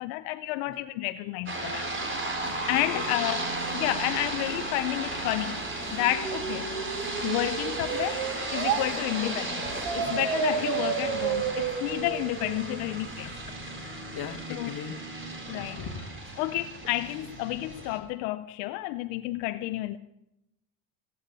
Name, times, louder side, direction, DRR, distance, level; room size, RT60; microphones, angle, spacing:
voice 1, 0.0-2.2 2.7-3.5 3.7-6.7 7.2-13.3 14.5-14.8 15.5-15.9 16.4-20.0, left 16 dB, 75° left, 0.7 m, -31 dB
sound 1, 1.5-18.0, right 2 dB, 25° right, 4.5 m, -34 dB
sound 2, 6.0-8.8 9.8-12.9, right 8 dB, 80° right, 1.9 m, -31 dB
voice 2, 13.8-15.0 15.5-16.1, left 7 dB, 50° left, 1.8 m, -39 dB
20.0 x 8.9 x 6.8 m
hypercardioid pair, 75°, 48 cm